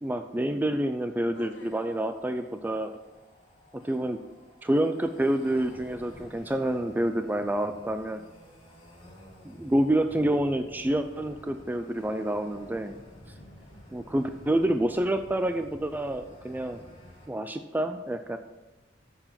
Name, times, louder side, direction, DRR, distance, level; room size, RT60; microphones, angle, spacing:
voice 1, 0.0-2.9 3.8-4.2 4.6-8.2 9.4-13.0 13.9-16.8 17.3-18.4, right 1 dB, 10° right, 8 dB, 0.3 m, -28 dB
voice 2, 1.3-2.0 13.3-13.9, equal, 80° left, 2 dB, 1.4 m, -51 dB
sound 1, 1.5-17.3, left 1 dB, 30° left, 2.7 m, -52 dB
7.2 x 6.8 x 5.8 m, 1.2 s
head